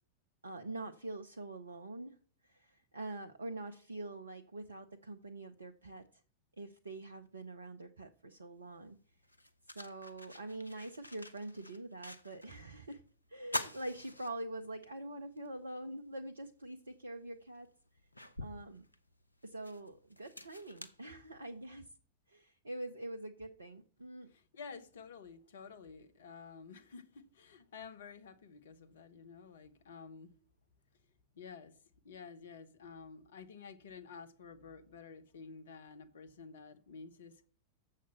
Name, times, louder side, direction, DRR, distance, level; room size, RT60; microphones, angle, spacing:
voice 1, 0.4-2.2 2.4-6.1 6.6-9.0 9.7-13.0 13.3-17.7 18.4-18.8 19.4-21.9 22.3-24.3, right 2 dB, 75° right, 0.6 m, -45 dB
sound 1, 8.6-8.7 9.2-12.6 12.9-13.0 13.4-14.9 15.4-15.5 16.9-17.0 17.5-21.7, left 1 dB, 85° left, 0.7 m, -45 dB
voice 2, 24.3-30.3 31.3-31.8 32.0-37.5, left 5 dB, 60° left, 1.1 m, -51 dB
7.4 x 6.6 x 5.7 m
figure-of-eight pair, 90°, 0 cm